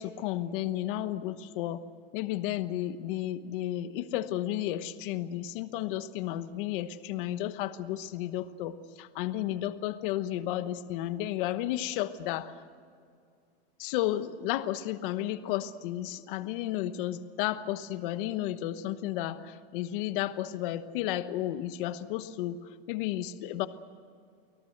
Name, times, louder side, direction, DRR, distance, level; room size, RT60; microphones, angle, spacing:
voice 1, 0.0-1.8 2.1-12.5 13.8-22.6 22.9-23.7, left 13 dB, 55° left, 11 dB, 1.1 m, -33 dB
24.5 x 18.0 x 8.0 m, 2.3 s
supercardioid pair, 160°, 32 cm